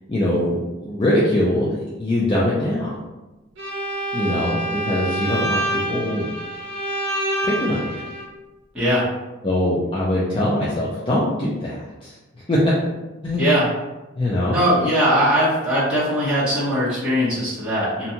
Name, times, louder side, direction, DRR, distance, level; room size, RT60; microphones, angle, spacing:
voice 1, 0.1-2.9 4.1-6.3 7.4-8.0 9.4-12.2 12.5-12.6 13.2-13.4 14.2-14.6, left 1 dB, 25° left, -7 dB, 0.4 m, -22 dB
Bowed string instrument, 3.6-8.3, right 1 dB, 65° right, 0.6 m, -27 dB
voice 2, 14.5-18.1, equal, 5° right, -11 dB, 0.8 m, -20 dB
2.7 x 2.2 x 2.8 m, 1.1 s
head